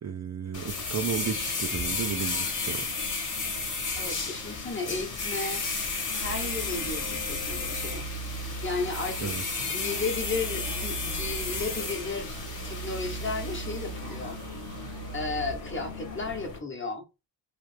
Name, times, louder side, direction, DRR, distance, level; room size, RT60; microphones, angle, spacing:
voice 1, 0.0-3.1 9.2-9.7, right 7 dB, 40° right, 0.5 m, -34 dB
sound 1, 0.5-16.6, left 4 dB, 45° left, 1.1 m, -33 dB
voice 2, 4.0-5.6 6.2-8.1 8.6-9.3 9.6-12.4 12.6-14.4 15.1-17.0, left 3 dB, 25° left, 1.0 m, -34 dB
sound 2, 6.2-16.5, right 5 dB, 65° right, 1.2 m, -40 dB
3.2 x 2.4 x 3.2 m
wide cardioid pair, 130°, 44 cm